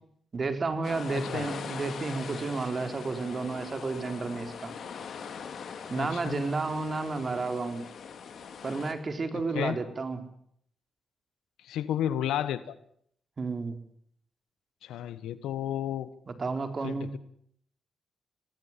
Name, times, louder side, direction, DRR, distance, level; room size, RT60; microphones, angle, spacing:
voice 1, 0.3-4.7 5.9-7.8 8.6-10.2 13.4-13.8 16.3-17.1, right 3 dB, 45° right, 7 dB, 4.3 m, -31 dB
sound 1, 0.8-8.9, left 6 dB, 70° left, 3.4 m, -41 dB
voice 2, 1.1-1.5 6.0-6.4 9.3-9.8 11.6-12.7 14.8-16.1 16.8-17.2, left 11 dB, 90° left, 15 dB, 1.3 m, -32 dB
27.0 x 19.5 x 7.5 m, 0.67 s
supercardioid pair, 55°, 0 cm